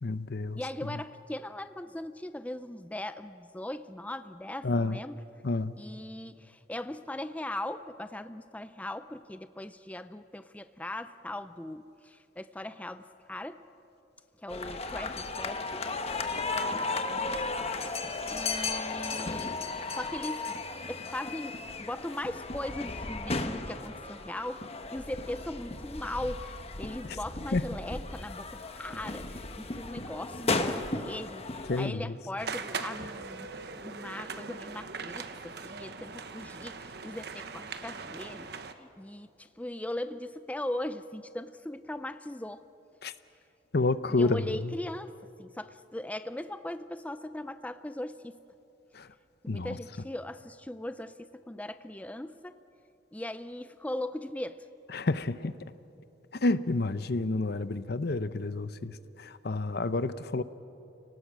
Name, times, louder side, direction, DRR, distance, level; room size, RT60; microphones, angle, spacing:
voice 1, 0.0-0.6 4.6-5.0 5.4-5.7 27.5-27.6 31.6-32.1 43.0-43.1 43.7-44.7 48.9-49.1 49.5-49.8 54.9-55.5 56.4-60.4, left 2 dB, 60° left, 14 dB, 0.8 m, -29 dB
voice 2, 0.5-5.2 5.8-13.6 14.4-15.9 16.5-17.3 18.3-19.5 19.9-20.6 20.9-42.6 44.1-45.1 45.4-48.4 49.4-52.6 53.1-54.6, left 1 dB, 10° left, 11 dB, 0.5 m, -39 dB
sound 1, 14.5-31.9, left 3 dB, 35° left, 1.2 m, -35 dB
sound 2, 32.4-38.7, right 4 dB, 65° right, 1.1 m, -40 dB
30.0 x 19.0 x 7.5 m, 2.8 s
head